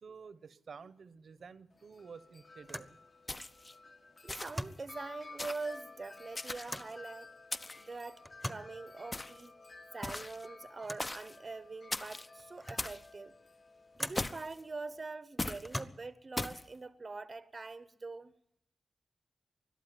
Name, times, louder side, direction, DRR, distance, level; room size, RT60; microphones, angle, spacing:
voice 1, 0.0-3.0 3.7-3.8, right 5 dB, 65° right, 1.0 m, -51 dB
sound 1, 1.4-1.6 1.9-2.0 2.6-3.0 4.4-4.9 6.7-7.0 8.2-8.8 10.8-11.2 11.9-12.0 12.4-13.0 14.0-14.4 15.6-16.2, equal, 5° left, 1.2 m, -42 dB
Wind chime, 1.7-15.0, left 3 dB, 40° left, 1.4 m, -54 dB
sound 2, 3.3-3.7 4.3-4.7 5.4-5.7 6.3-6.9 7.5-7.9 9.1-9.5 10.0-10.5 11.0-11.4 11.9-12.3 12.8-13.1 14.1-14.6 15.4-15.7 16.4-16.6, left 2 dB, 20° left, 0.8 m, -39 dB
voice 2, 4.2-7.3 7.8-9.5 9.9-13.3 14.0-18.3, right 3 dB, 35° right, 0.9 m, -44 dB
21.0 x 13.0 x 9.6 m
wide cardioid pair, 115°, 0 cm